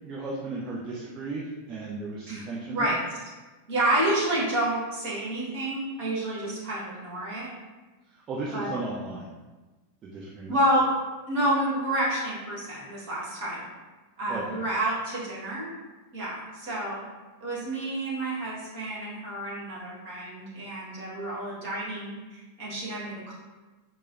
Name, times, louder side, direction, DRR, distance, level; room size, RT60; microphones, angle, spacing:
voice 1, 0.0-3.0 8.0-9.3 10.0-10.6 14.3-14.6, right 3 dB, 30° right, -4 dB, 0.4 m, -35 dB
voice 2, 3.7-7.5 8.5-8.7 10.5-10.9 11.3-13.6 14.2-15.7 16.1-17.0 17.4-23.3, right 1 dB, 45° right, -6 dB, 1.2 m, -29 dB
4.5 x 2.0 x 2.4 m, 1.2 s
figure-of-eight pair, 90°, 0 cm